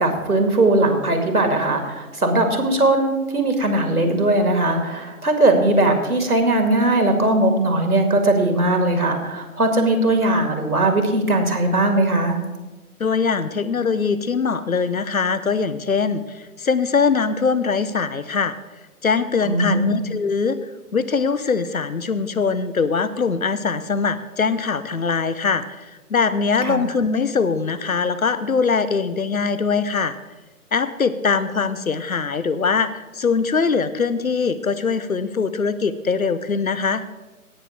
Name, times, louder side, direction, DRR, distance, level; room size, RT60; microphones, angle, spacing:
voice 1, 0.0-12.4 19.4-20.0 26.6-26.8, right 2 dB, 75° right, 5 dB, 2.4 m, -19 dB
voice 2, 13.0-18.5 19.0-30.1 30.7-37.0, left 5 dB, 65° left, 15 dB, 0.9 m, -22 dB
17.5 x 6.8 x 4.6 m, 1.1 s
figure-of-eight pair, 145°, 44 cm